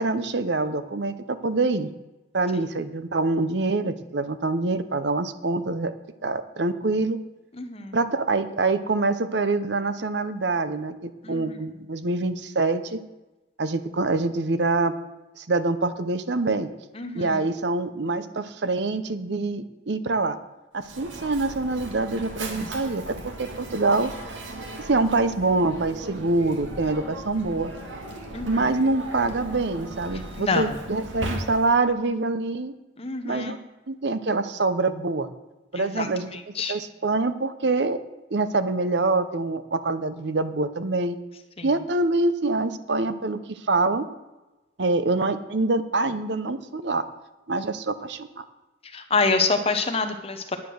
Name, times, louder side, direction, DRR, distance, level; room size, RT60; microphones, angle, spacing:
voice 1, 0.0-1.9 2.3-5.9 6.2-7.2 7.9-13.0 13.6-14.9 15.4-16.7 17.1-20.4 20.7-24.4 24.8-27.7 28.5-32.7 33.2-33.6 33.9-35.3 35.7-36.3 36.7-38.0 38.3-41.2 41.6-44.1 44.8-47.0 47.5-48.4, right 3 dB, 65° right, 11 dB, 0.8 m, -25 dB
voice 2, 7.6-8.0 11.2-11.5 16.9-17.4 28.3-28.7 30.4-30.6 33.0-33.6 35.7-36.1 36.3-36.7 41.6-41.7 48.9-50.6, left 4 dB, 30° left, 6 dB, 1.0 m, -26 dB
Mechanisms, 20.8-31.9, right 1 dB, 80° right, 1.8 m, -37 dB
9.8 x 9.5 x 6.4 m, 1.0 s
head